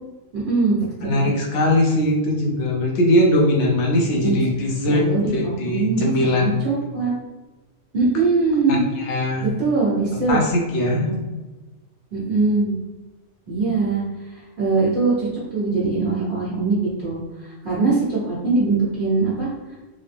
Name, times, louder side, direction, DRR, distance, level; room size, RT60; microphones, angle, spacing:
voice 1, 0.3-0.8 1.0-1.2 4.2-4.4 4.9-7.1 7.9-8.8 9.4-10.4 10.8-11.2 12.1-12.8 13.5-14.0 14.3-19.5, right 3 dB, 45° right, -10 dB, 1.4 m, -22 dB
voice 2, 1.0-5.1 5.3-6.6 8.7-9.4 10.3-11.1, left 1 dB, 70° left, 0 dB, 1.0 m, -20 dB
3.7 x 2.0 x 3.4 m, 1.2 s
omnidirectional pair, 1.3 m